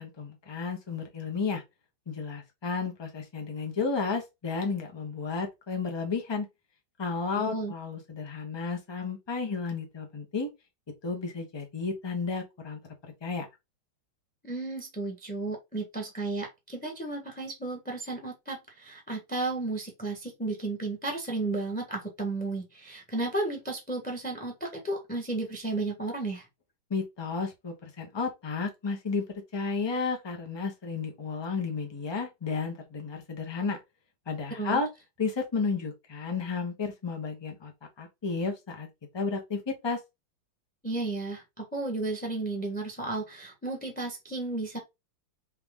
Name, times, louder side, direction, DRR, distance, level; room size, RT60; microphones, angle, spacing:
voice 1, 0.0-1.6 2.1-6.5 7.0-10.5 11.0-12.8 13.2-13.5 26.9-29.2 29.5-33.8 34.3-34.9 35.2-37.7 38.0-38.9 39.1-40.0, left 4 dB, 25° left, 0.6 m, -32 dB
voice 2, 7.4-7.7 14.4-26.4 34.6-34.8 40.8-44.8, right 2 dB, 5° left, 1.0 m, -33 dB
4.8 x 3.0 x 3.6 m
omnidirectional pair, 2.2 m